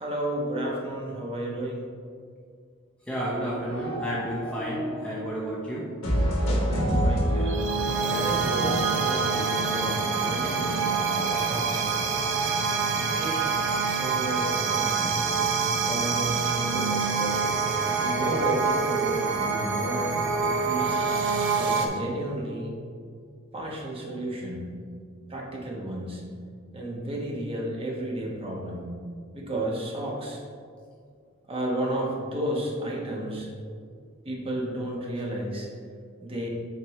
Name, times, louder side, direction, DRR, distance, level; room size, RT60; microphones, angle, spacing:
voice 1, 0.0-1.8 6.7-7.6 8.1-11.8 13.2-13.4 13.8-15.2 15.8-17.5 18.0-21.0 21.5-22.7 23.5-24.7 25.3-26.2 26.7-28.8 29.3-30.4 31.5-33.5 34.2-35.7 36.2-36.5, right 1 dB, 25° right, -3 dB, 1.1 m, -32 dB
voice 2, 3.1-5.9, equal, 5° left, -7 dB, 0.8 m, -31 dB
sound 1, 3.7-5.5 6.0-9.4, equal, 75° left, 1.4 m, -28 dB
sound 2, 7.2-21.9, right 4 dB, 60° right, 0.7 m, -26 dB
7.7 x 4.3 x 3.1 m, 2.2 s
head